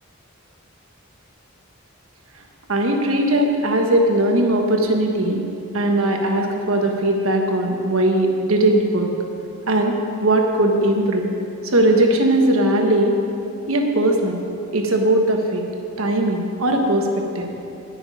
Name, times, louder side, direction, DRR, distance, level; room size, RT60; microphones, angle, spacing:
voice 1, 2.7-5.4 5.7-9.1 9.7-11.3 11.6-13.2 13.7-14.4 14.7-15.6 16.0-17.5, right 1 dB, 70° right, 2 dB, 1.3 m, -19 dB
10.0 x 6.3 x 8.9 m, 2.8 s
head